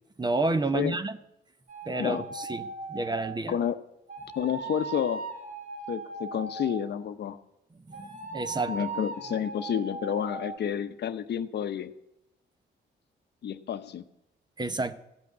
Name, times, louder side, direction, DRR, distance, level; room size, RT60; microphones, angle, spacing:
voice 1, 0.2-1.2 1.9-3.6 7.9-8.8 14.6-15.0, right 2 dB, 20° right, 11 dB, 0.8 m, -30 dB
sound 1, 1.7-3.4 4.1-7.0 7.9-10.6, right 3 dB, 45° right, 2.5 m, -38 dB
voice 2, 4.4-5.2 5.9-7.4 8.7-11.9 13.4-14.0, left 9 dB, 60° left, 10 dB, 0.8 m, -30 dB
15.0 x 6.0 x 9.4 m, 0.87 s
cardioid pair, 90°, 20 cm